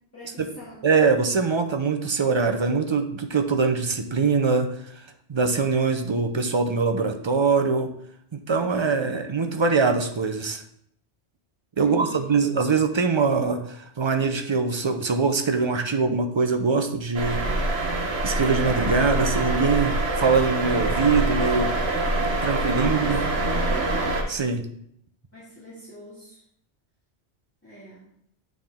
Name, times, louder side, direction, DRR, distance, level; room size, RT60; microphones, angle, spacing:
voice 1, 0.1-0.8 9.0-9.2 11.8-12.5 22.6-24.1 25.3-26.4 27.6-28.0, equal, 10° left, -9 dB, 1.7 m, -44 dB
voice 2, 0.8-4.7 5.3-7.9 8.3-10.6 11.8-17.9 18.2-21.7 22.4-23.2 24.3-24.7, right 4 dB, 40° right, 6 dB, 0.4 m, -23 dB
sound 1, 17.1-24.2, right 2 dB, 65° right, 1.2 m, -25 dB
8.9 x 3.8 x 3.5 m, 0.69 s
omnidirectional pair, 1.2 m